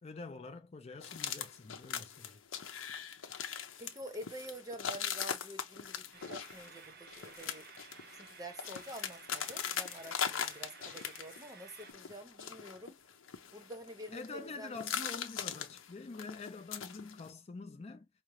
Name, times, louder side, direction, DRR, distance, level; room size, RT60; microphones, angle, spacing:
voice 1, 0.0-2.4 14.1-18.1, left 3 dB, 30° left, 0.4 m, -46 dB
sound 1, 1.0-11.5 11.8-14.4 14.7-17.3, left 8 dB, 75° left, 0.7 m, -41 dB
voice 2, 3.8-6.0 6.3-7.6 8.1-13.0 13.5-14.8, equal, 20° right, 0.8 m, -47 dB
sound 2, 6.1-11.9, right 6 dB, 50° right, 0.6 m, -55 dB
5.1 x 2.0 x 3.0 m
head